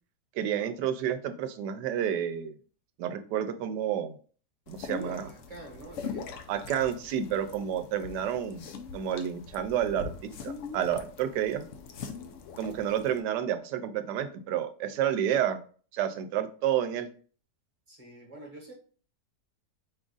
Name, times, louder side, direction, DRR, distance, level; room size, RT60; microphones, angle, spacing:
voice 1, 0.3-2.6 3.0-4.2 4.7-5.3 6.5-8.7 8.9-10.1 10.4-11.7 12.6-15.6 15.9-17.1, right 9 dB, 90° right, 1.2 m, -30 dB
sound 1, 4.7-13.2, left 5 dB, 65° left, 0.8 m, -42 dB
voice 2, 4.8-6.5 17.9-18.7, right 2 dB, 25° right, 1.1 m, -47 dB
4.9 x 2.4 x 3.8 m
omnidirectional pair, 1.8 m